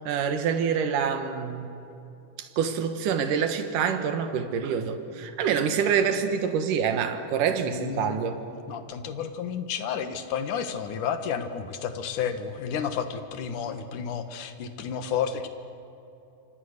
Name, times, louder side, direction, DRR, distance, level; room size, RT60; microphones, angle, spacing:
voice 1, 0.1-1.7 2.4-8.4, right 7 dB, 85° right, 7 dB, 3.0 m, -26 dB
voice 2, 7.7-8.2 8.5-15.5, left 7 dB, 75° left, 8 dB, 3.0 m, -31 dB
28.0 x 26.0 x 6.7 m, 2.9 s
omnidirectional pair, 3.7 m